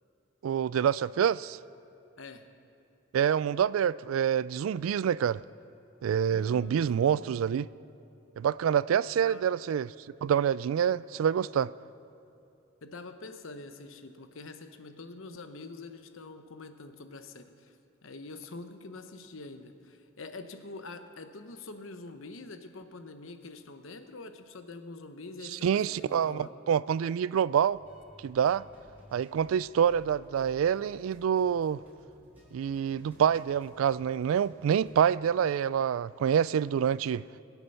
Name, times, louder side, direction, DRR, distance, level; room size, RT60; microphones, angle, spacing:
voice 1, 0.4-1.6 3.1-5.4 6.0-7.7 8.4-9.9 10.2-11.7 25.6-27.8 28.2-28.6 29.1-31.8 32.5-37.2, right 8 dB, 85° right, 0.3 m, -26 dB
voice 2, 2.2-2.5 6.3-7.3 9.1-9.5 12.8-17.8 18.0-26.6, left 3 dB, 75° left, 0.9 m, -45 dB
sound 1, 27.7-35.0, equal, 10° right, 3.6 m, -57 dB
22.5 x 8.1 x 5.7 m
head